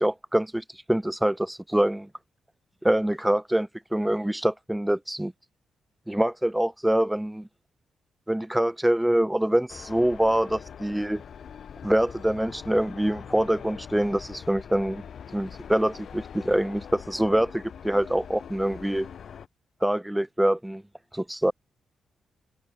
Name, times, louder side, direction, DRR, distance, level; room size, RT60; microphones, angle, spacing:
voice 1, 0.0-2.1 2.8-5.3 6.1-7.5 8.3-11.2 11.8-15.0 15.3-19.1 19.8-20.8 21.1-21.5, right 1 dB, 5° right, 3.7 m, -25 dB
sound 1, 9.7-19.5, left 8 dB, 65° left, 5.0 m, -43 dB
cardioid pair, 85°, 0 cm